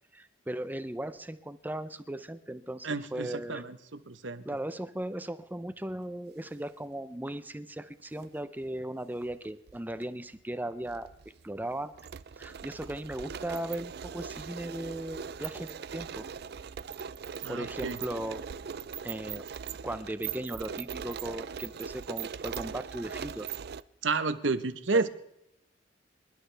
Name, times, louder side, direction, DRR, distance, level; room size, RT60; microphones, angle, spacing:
voice 1, 0.1-3.6 4.4-11.1 11.4-11.9 12.4-16.3 17.5-18.5 19.0-19.4 19.8-23.5 24.9-25.1, right 1 dB, 10° right, 12 dB, 0.5 m, -37 dB
voice 2, 2.8-3.8 4.1-4.4 17.4-18.0 24.0-25.1, right 3 dB, 85° right, 11 dB, 1.0 m, -30 dB
sound 1, 8.0-8.3 9.3-10.1 10.3-10.4 10.9-23.8, right 7 dB, 60° right, 0.4 m, -40 dB
26.5 x 11.5 x 3.4 m, 0.82 s
head